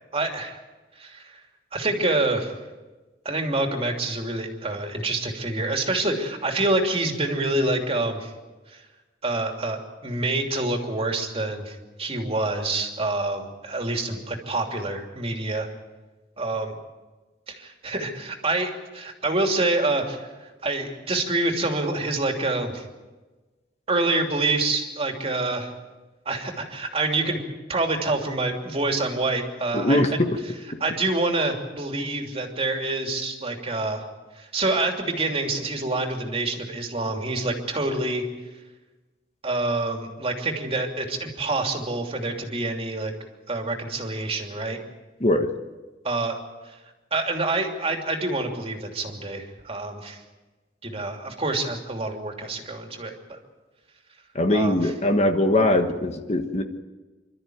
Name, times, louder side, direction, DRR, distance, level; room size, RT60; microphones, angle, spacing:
voice 1, 0.1-0.6 1.0-1.4 1.7-2.5 3.2-8.3 8.7-8.8 9.2-15.7 16.4-16.7 17.5-22.8 23.9-25.7 26.2-27.4 27.7-30.2 30.8-34.0 34.4-38.2 39.4-43.1 43.5-44.8 46.0-46.4 47.1-50.2 50.8-53.4 54.5-54.9, right 2 dB, 30° right, 3 dB, 2.9 m, -27 dB
voice 2, 29.7-30.3 45.2-45.5 54.3-56.6, left 1 dB, 35° left, 6 dB, 1.3 m, -21 dB
27.0 x 13.0 x 9.3 m, 1.2 s
head